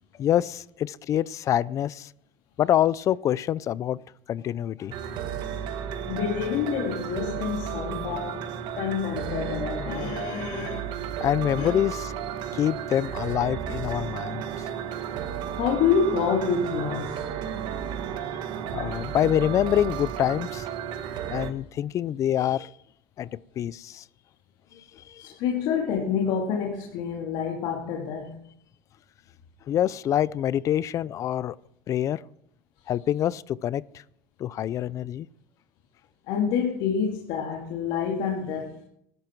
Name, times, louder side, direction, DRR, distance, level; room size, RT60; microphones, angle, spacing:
voice 1, 0.2-2.1 2.6-4.0 4.3-4.9 11.2-12.1 12.5-14.6 18.7-20.7 21.3-22.7 23.2-23.3 23.6-24.0 24.9-25.3 29.7-31.5 31.9-32.2 32.9-33.8 34.4-35.3, left 11 dB, 35° left, 0.5 m, -26 dB
sound 1, 4.9-21.5, right 8 dB, 60° right, 1.8 m, -33 dB
voice 2, 6.1-8.4 8.7-10.9 11.6-11.7 15.4-17.3 25.2-28.5 36.3-38.8, left 6 dB, 65° left, 2.6 m, -27 dB
20.5 x 12.0 x 4.7 m
cardioid pair, 150°, 9 cm